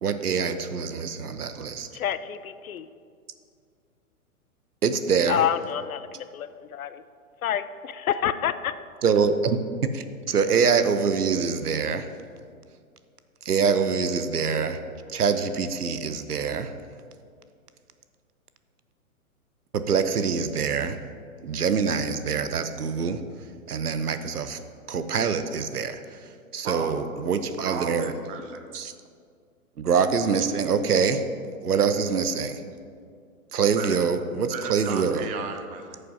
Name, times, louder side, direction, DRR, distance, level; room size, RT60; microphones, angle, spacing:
voice 1, 0.0-1.9 4.8-5.4 9.0-12.1 13.4-14.8 15.1-16.7 19.7-21.0 21.4-23.2 23.7-24.6 24.9-28.1 28.7-28.9 29.8-31.2 31.6-32.6 33.5-35.3, right 6 dB, 90° right, 10 dB, 0.9 m, -25 dB
voice 2, 1.9-2.9 5.3-7.0 7.4-8.8, left 10 dB, 70° left, 13 dB, 0.7 m, -28 dB
voice 3, 27.6-28.6 33.8-34.0 34.5-36.0, right 6 dB, 20° right, 6 dB, 0.7 m, -34 dB
9.3 x 6.8 x 5.3 m, 2.2 s
hypercardioid pair, 125°, 44 cm